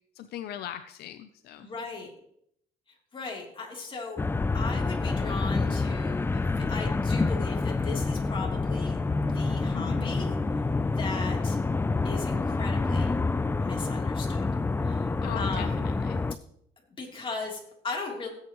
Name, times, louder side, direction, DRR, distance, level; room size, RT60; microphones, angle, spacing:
voice 1, 0.2-1.7 9.7-10.1 15.2-16.2, left 11 dB, 70° left, 11 dB, 0.5 m, -39 dB
voice 2, 1.6-2.1 3.1-4.2 4.5-10.4 10.9-11.6 12.0-13.1 13.6-14.5 14.8-15.1 15.3-15.9 17.0-18.3, left 4 dB, 30° left, -1 dB, 3.3 m, -38 dB
sound 1, 4.2-16.3, left 3 dB, 15° left, 0.4 m, -27 dB
16.5 x 8.8 x 3.1 m, 0.73 s
cardioid pair, 110°, 17 cm